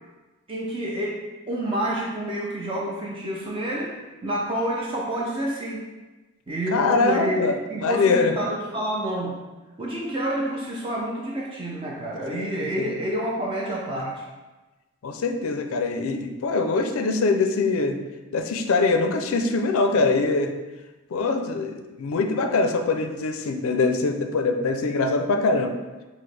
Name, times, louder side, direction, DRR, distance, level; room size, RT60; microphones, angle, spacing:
voice 1, 0.5-4.0 4.2-5.9 6.5-9.4 9.8-14.3, right 1 dB, 25° right, -4 dB, 0.4 m, -28 dB
voice 2, 6.7-8.3 12.3-12.9 15.0-18.0 18.3-20.5 21.1-25.8, left 3 dB, 75° left, 6 dB, 0.4 m, -23 dB
5.9 x 2.0 x 3.2 m, 1.2 s
head